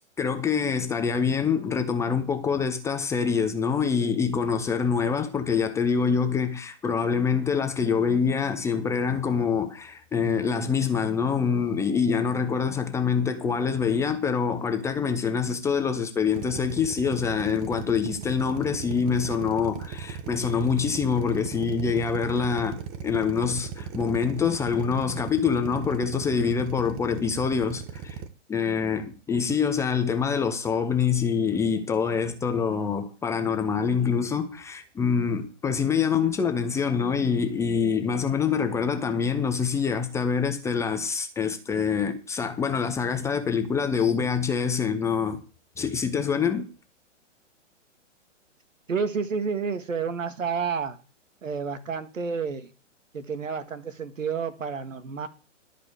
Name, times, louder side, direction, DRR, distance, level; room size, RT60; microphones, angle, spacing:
voice 1, 0.2-28.2 28.5-45.4 45.8-46.7, left 6 dB, 10° left, 0.6 m, -25 dB
Drill, 16.3-28.3, right 7 dB, 30° right, 1.1 m, -37 dB
voice 2, 48.9-51.0 51.4-52.7 53.1-55.3, right 5 dB, 85° right, 1.8 m, -30 dB
12.0 x 5.1 x 8.2 m
hypercardioid pair, 135°, 38 cm